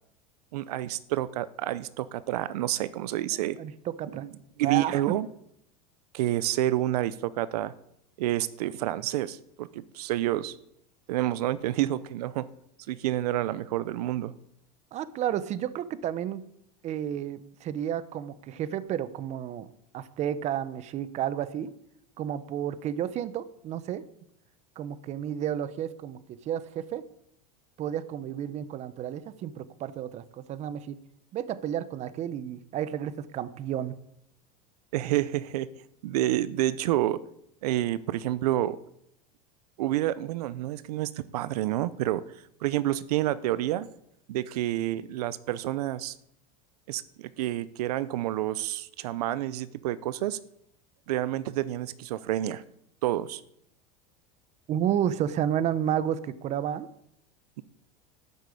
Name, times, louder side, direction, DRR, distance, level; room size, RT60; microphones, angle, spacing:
voice 1, 0.5-3.6 4.2-4.3 4.6-5.3 6.1-7.7 8.2-10.5 11.1-12.5 12.9-14.3 34.9-35.7 36.0-37.2 37.6-38.8 39.8-42.2 42.6-43.9 44.3-46.1 46.9-50.4 51.1-52.6 53.0-53.4, right 14 dB, 85° right, 17 dB, 0.7 m, -29 dB
voice 2, 3.6-4.3 4.6-5.0 14.9-16.4 16.8-19.7 19.9-21.7 22.2-24.0 24.8-27.0 27.8-30.9 31.3-34.0 54.7-56.9, right 10 dB, 35° right, 15 dB, 0.9 m, -31 dB
13.0 x 7.6 x 8.5 m, 0.74 s
supercardioid pair, 135°, 19 cm